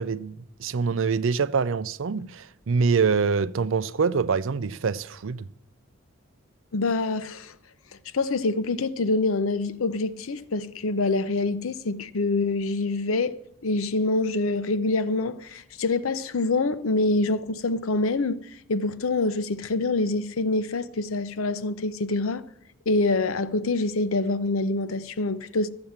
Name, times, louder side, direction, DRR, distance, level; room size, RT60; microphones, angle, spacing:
voice 1, 0.0-5.5, right 5 dB, 70° right, 0.5 m, -25 dB
voice 2, 6.7-7.5 8.1-22.4 22.9-25.7, left 3 dB, 85° left, 0.7 m, -26 dB
14.0 x 7.8 x 7.2 m
head